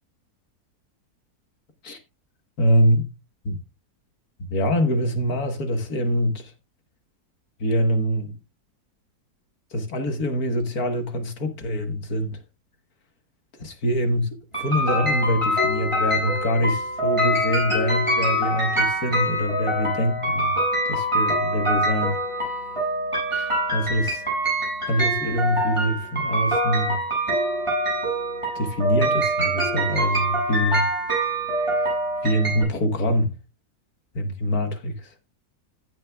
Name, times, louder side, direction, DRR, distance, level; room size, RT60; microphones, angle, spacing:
voice 1, 2.6-3.1 3.5-3.6 4.5-6.5 7.6-8.4 9.7-12.4 13.6-20.6 20.9-22.2 23.3-24.2 24.9-27.0 28.6-30.9 32.2-33.3 34.1-35.1, equal, 65° left, 1.9 m, -24 dB
sound 1, 14.5-32.6, right 1 dB, 15° right, 7.1 m, -24 dB
15.5 x 7.3 x 2.3 m
omnidirectional pair, 1.7 m